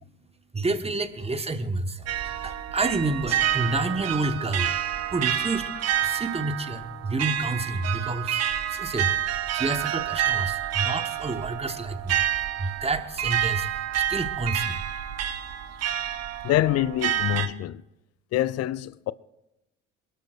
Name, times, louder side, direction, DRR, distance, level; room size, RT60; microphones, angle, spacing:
voice 1, 0.5-4.8 5.1-12.2 12.6-14.8, right 2 dB, 15° right, 1.4 m, -29 dB
sound 1, 2.1-17.5, right 11 dB, 45° right, 1.1 m, -28 dB
voice 2, 16.4-17.8 18.3-19.1, left 14 dB, 45° left, 0.6 m, -25 dB
27.0 x 12.5 x 2.5 m
figure-of-eight pair, 50°, 37 cm